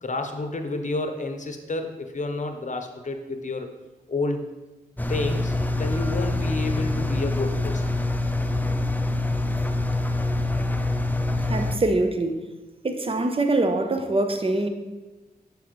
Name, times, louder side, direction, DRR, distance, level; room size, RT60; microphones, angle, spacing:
voice 1, 0.0-3.7 4.1-4.5 5.1-7.9, left 2 dB, 45° left, 6 dB, 0.8 m, -30 dB
Engine, 5.0-11.8, left 2 dB, 10° left, 0.5 m, -25 dB
voice 2, 11.4-12.4 12.8-14.7, right 2 dB, 35° right, 7 dB, 0.8 m, -24 dB
7.1 x 4.8 x 3.1 m, 1.1 s
cardioid pair, 45°, 17 cm